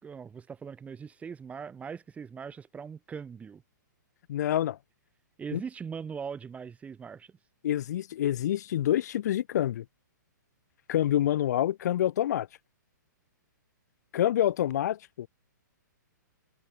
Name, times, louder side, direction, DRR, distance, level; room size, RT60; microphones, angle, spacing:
voice 1, 0.0-3.6 5.4-7.4, right 6 dB, 15° right, 2.3 m, -40 dB
voice 2, 4.3-4.8 5.5-5.6 7.6-9.8 10.9-12.5 14.1-15.3, left 12 dB, 60° left, 1.9 m, -27 dB
hypercardioid pair, 130°, 10 cm